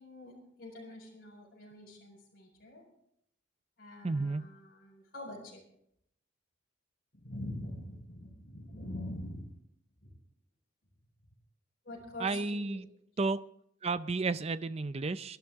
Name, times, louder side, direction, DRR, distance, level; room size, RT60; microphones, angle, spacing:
voice 1, 0.0-2.8 3.8-5.6 7.1-9.5 10.0-10.2 11.8-12.8, left 1 dB, 50° left, -2 dB, 4.5 m, -45 dB
voice 2, 4.0-4.5 12.2-12.9 13.2-13.4 13.8-15.4, right 3 dB, 30° right, 14 dB, 0.5 m, -32 dB
23.0 x 11.5 x 3.6 m, 0.73 s
head